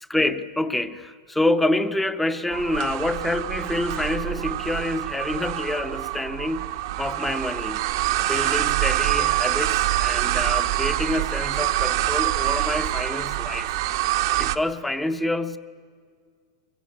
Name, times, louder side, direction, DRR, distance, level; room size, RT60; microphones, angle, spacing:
voice 1, 0.1-6.7 7.0-7.8 8.3-13.7 14.4-15.6, left 1 dB, 5° left, 0.7 m, -27 dB
sound 1, 2.5-14.6, right 15 dB, 60° right, 0.9 m, -25 dB
22.5 x 16.5 x 9.9 m
supercardioid pair, 150°, 3 cm